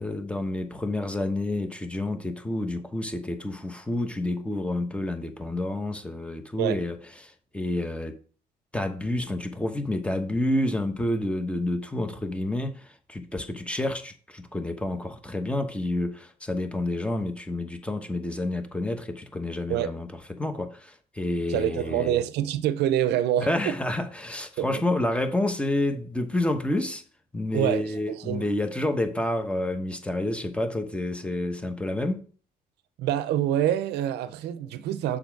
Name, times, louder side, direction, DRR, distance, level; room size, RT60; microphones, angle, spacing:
voice 1, 0.0-8.2 8.7-22.2 23.4-27.0 27.3-32.2, left 1 dB, 5° left, 1.0 m, -29 dB
voice 2, 21.5-23.7 24.6-24.8 27.5-28.4 33.0-35.2, right 11 dB, 80° right, 0.6 m, -26 dB
6.9 x 5.1 x 4.6 m
cardioid pair, 110°, 17 cm